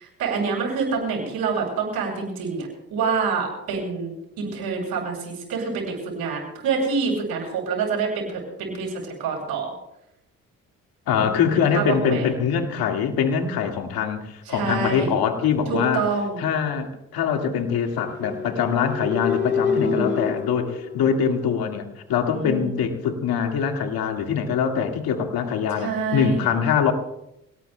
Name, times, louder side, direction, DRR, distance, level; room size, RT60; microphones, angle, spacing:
voice 1, 0.0-9.7 11.2-12.3 14.5-15.1 15.7-16.4 19.7-20.2 22.3-22.7 25.8-26.5, right 5 dB, 75° right, 0 dB, 6.9 m, -27 dB
voice 2, 11.1-16.0 16.4-26.9, left 7 dB, 70° left, 4 dB, 2.2 m, -23 dB
sound 1, 17.9-21.7, left 5 dB, 30° left, 2.4 m, -27 dB
27.0 x 18.5 x 2.3 m, 0.84 s
hypercardioid pair, 55°, 38 cm